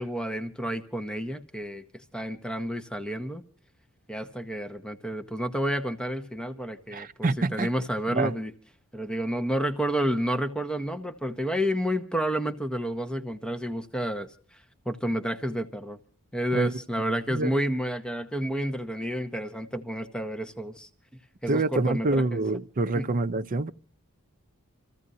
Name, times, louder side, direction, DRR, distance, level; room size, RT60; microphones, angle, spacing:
voice 1, 0.0-3.4 4.1-8.5 8.9-14.3 14.9-16.0 16.3-20.9 21.4-22.4 22.9-23.1, equal, 5° left, 0.9 m, -30 dB
voice 2, 6.9-7.7 8.1-8.3 16.5-16.7 17.1-17.5 21.5-23.7, right 2 dB, 40° right, 0.6 m, -26 dB
29.5 x 15.0 x 2.7 m
head